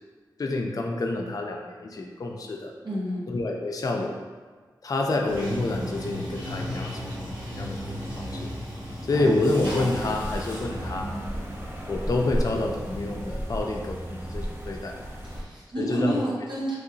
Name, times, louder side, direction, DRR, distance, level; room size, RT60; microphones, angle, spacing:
voice 1, 0.4-2.7 3.3-4.2 4.8-8.5 9.1-11.1 11.9-15.0 15.8-16.2, left 2 dB, 50° left, 1 dB, 0.4 m, -28 dB
voice 2, 2.8-3.2 15.2-16.7, equal, 70° right, -7 dB, 0.7 m, -29 dB
Bathtub (filling or washing), 5.2-13.4, equal, 50° right, 1.2 m, -35 dB
sound 1, 9.6-15.4, equal, 30° right, 0.6 m, -34 dB
3.1 x 2.7 x 2.6 m, 1.5 s
cardioid pair, 45°, 8 cm